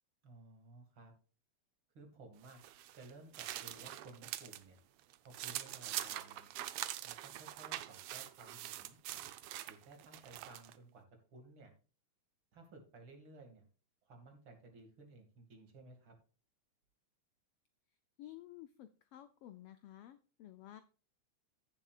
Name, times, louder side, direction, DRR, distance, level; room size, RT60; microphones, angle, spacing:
voice 1, 0.2-1.1 1.9-2.6 2.9-4.8 5.2-6.5 7.0-9.0 9.7-11.0 11.3-11.7 12.5-13.7 14.1-16.1, right 3 dB, 45° right, 4 dB, 2.8 m, -56 dB
sound 1, 2.4-4.6 5.0-10.8, right 13 dB, 80° right, 1.3 m, -44 dB
voice 2, 18.2-20.8, left 13 dB, 85° left, 12 dB, 1.3 m, -53 dB
15.5 x 7.2 x 2.4 m, 0.37 s
omnidirectional pair, 3.4 m